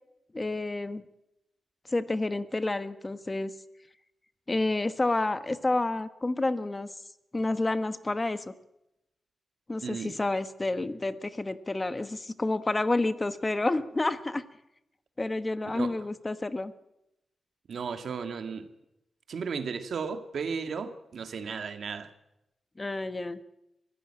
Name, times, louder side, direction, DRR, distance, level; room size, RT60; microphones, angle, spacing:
voice 1, 0.3-1.0 1.9-3.5 4.5-6.9 7.3-8.5 9.7-14.4 15.2-16.7 22.8-23.4, left 2 dB, 25° left, 11 dB, 1.2 m, -29 dB
voice 2, 9.8-10.2 15.7-15.9 17.7-18.7 19.3-22.1, right 5 dB, 75° right, 7 dB, 2.0 m, -34 dB
22.5 x 15.0 x 8.9 m, 0.88 s
cardioid pair, 80°, 0 cm